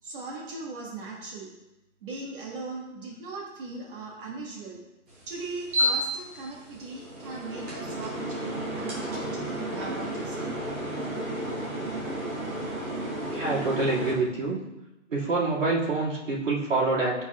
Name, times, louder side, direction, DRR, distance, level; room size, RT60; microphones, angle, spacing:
voice 1, 0.0-1.5 2.0-4.8 5.3-10.5, right 3 dB, 45° right, -3 dB, 1.5 m, -39 dB
sound 1, 5.1-14.1, equal, 10° right, 0.5 m, -32 dB
voice 2, 13.3-14.6 15.1-17.2, right 3 dB, 80° right, -5 dB, 2.1 m, -26 dB
11.5 x 4.2 x 2.3 m, 0.97 s
hypercardioid pair, 155°, 38 cm